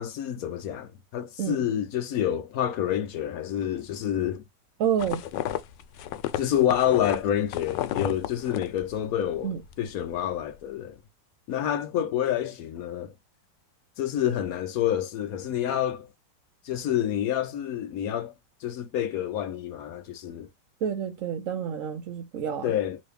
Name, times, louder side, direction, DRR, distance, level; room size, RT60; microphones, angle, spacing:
voice 1, 0.0-4.4 6.4-11.0 11.5-13.1 14.0-16.1 16.6-18.3 18.6-20.5 22.6-23.0, left 10 dB, 70° left, 0.9 m, -28 dB
voice 2, 4.8-5.2 9.4-9.6 20.8-22.7, right 8 dB, 60° right, 0.9 m, -29 dB
sound 1, 5.0-9.3 9.6-10.1, left 12 dB, 90° left, 1.2 m, -33 dB
3.1 x 2.6 x 3.3 m
omnidirectional pair, 1.9 m